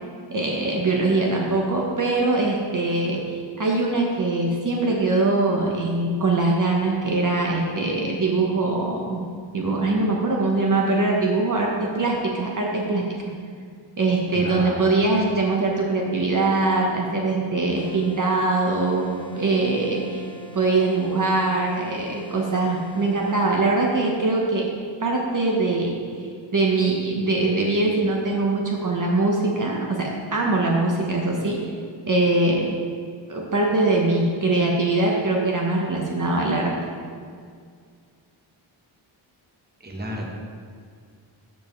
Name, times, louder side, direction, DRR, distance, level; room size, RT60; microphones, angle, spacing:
voice 1, 0.3-9.2 9.5-13.0 14.0-20.2 20.5-24.6 25.0-26.0 26.5-31.6 32.1-32.7 33.3-36.7, right 2 dB, 40° right, -1 dB, 1.1 m, -22 dB
voice 2, 14.3-15.0 39.8-40.3, equal, 20° right, 0 dB, 1.2 m, -32 dB
sound 1, 17.8-23.5, right 1 dB, 10° left, 0.8 m, -43 dB
13.5 x 5.5 x 3.2 m, 2.1 s
wide cardioid pair, 100°, 47 cm